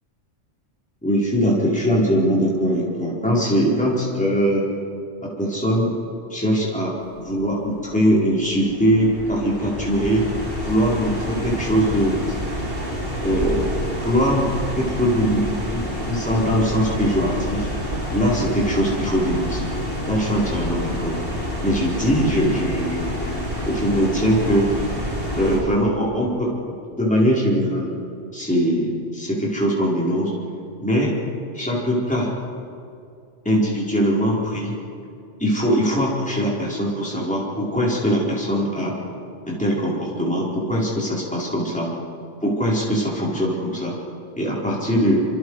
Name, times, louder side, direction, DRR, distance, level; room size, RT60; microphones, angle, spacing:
voice 1, 1.0-4.6 5.2-5.9 6.3-10.3 10.6-12.2 13.2-17.7 18.1-19.7 20.1-21.2 21.6-23.1 23.6-24.7 25.4-26.6 27.0-27.9 28.3-30.3 30.8-31.1 31.5-32.3 33.4-34.7 35.4-38.9 39.4-41.9 42.4-43.9 44.4-45.2, equal, 5° left, -5 dB, 4.6 m, -21 dB
sound 1, 7.0-25.6, equal, 50° right, 5.2 m, -28 dB
27.5 x 25.5 x 4.9 m, 2.5 s
omnidirectional pair, 1.2 m